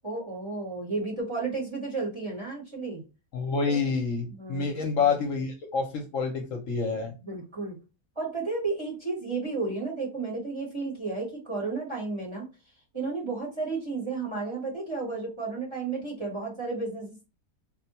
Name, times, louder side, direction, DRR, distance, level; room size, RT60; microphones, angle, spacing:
voice 1, 0.0-3.0 4.3-5.2 7.2-7.8 8.2-12.5 12.9-17.2, right 3 dB, 20° right, -2 dB, 1.1 m, -33 dB
voice 2, 3.3-7.1, left 5 dB, 65° left, 3 dB, 1.0 m, -28 dB
4.2 x 2.2 x 2.8 m, 0.30 s
omnidirectional pair, 1.6 m